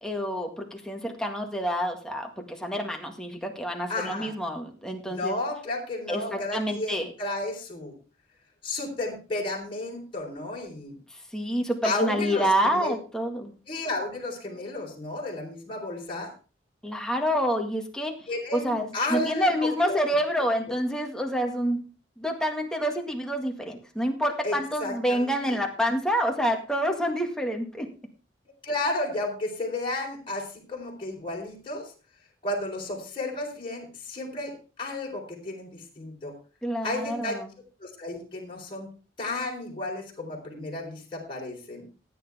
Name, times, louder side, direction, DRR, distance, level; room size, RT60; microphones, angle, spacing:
voice 1, 0.0-5.3 6.1-7.1 11.3-13.5 16.8-18.2 18.5-21.8 22.2-27.9 36.6-37.5, equal, 5° left, 2 dB, 1.9 m, -28 dB
voice 2, 3.9-4.3 5.1-8.0 8.6-11.0 11.8-12.9 13.7-16.3 18.3-18.7 18.9-20.0 24.4-25.4 28.6-31.9 32.4-36.3 36.8-37.4 37.8-38.9 39.2-41.8, left 2 dB, 30° left, -3 dB, 4.3 m, -32 dB
15.0 x 9.4 x 3.6 m, 0.35 s
head